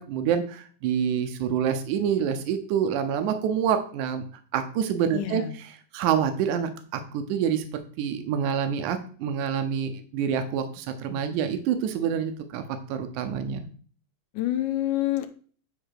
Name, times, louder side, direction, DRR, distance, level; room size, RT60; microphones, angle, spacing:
voice 1, 0.0-4.2 4.5-5.4 5.9-7.6 8.0-12.6 12.9-13.7, right 8 dB, 80° right, 8 dB, 2.3 m, -27 dB
voice 2, 5.1-5.6 14.3-15.3, left 14 dB, 90° left, 7 dB, 2.3 m, -27 dB
9.9 x 3.4 x 6.4 m, 0.43 s
omnidirectional pair, 3.6 m